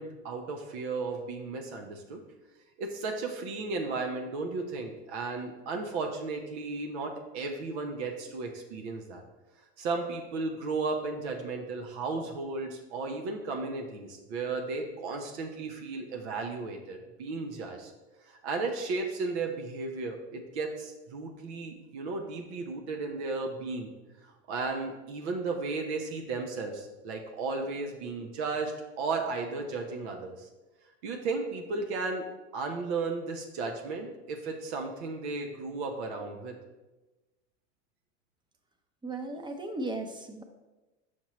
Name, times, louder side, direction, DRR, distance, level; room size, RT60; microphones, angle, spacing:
voice 1, 0.0-2.2 2.8-9.2 9.8-17.9 18.3-23.9 24.2-30.5 31.0-32.2 32.5-36.5, right 3 dB, 75° right, 3 dB, 0.9 m, -34 dB
voice 2, 39.0-40.4, right 2 dB, 15° right, 6 dB, 0.7 m, -36 dB
6.3 x 5.9 x 3.1 m, 1.1 s
hypercardioid pair, 95°, 34 cm